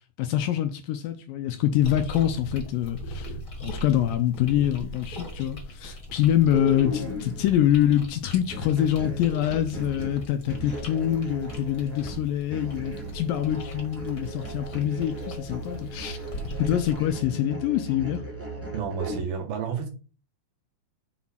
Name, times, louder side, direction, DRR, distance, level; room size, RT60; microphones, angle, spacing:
voice 1, 0.2-3.3 3.6-16.2 16.6-18.2, left 11 dB, 80° left, 2.2 m, -25 dB
sound 1, 1.8-17.1, equal, 35° left, 1.3 m, -40 dB
sound 2, 6.5-7.7 8.5-19.2, right 1 dB, 10° right, 0.9 m, -36 dB
voice 2, 18.7-19.9, right 7 dB, 75° right, 3.5 m, -30 dB
7.6 x 4.0 x 5.8 m
omnidirectional pair, 4.5 m